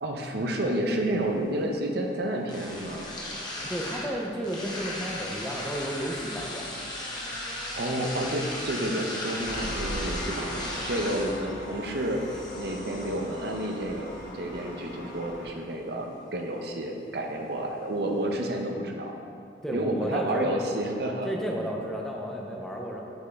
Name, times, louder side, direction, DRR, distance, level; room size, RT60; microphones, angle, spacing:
voice 1, 0.0-3.1 7.5-19.2 19.7-21.7, right 1 dB, 60° right, 2 dB, 0.7 m, -30 dB
sound 1, 0.6-18.6, left 1 dB, 25° left, 1.1 m, -39 dB
voice 2, 3.6-6.8 19.6-20.6 21.2-23.0, equal, 5° left, -1 dB, 0.5 m, -33 dB
Engine, 9.4-15.5, equal, 70° left, 1.7 m, -39 dB
8.1 x 5.3 x 3.5 m, 2.5 s
head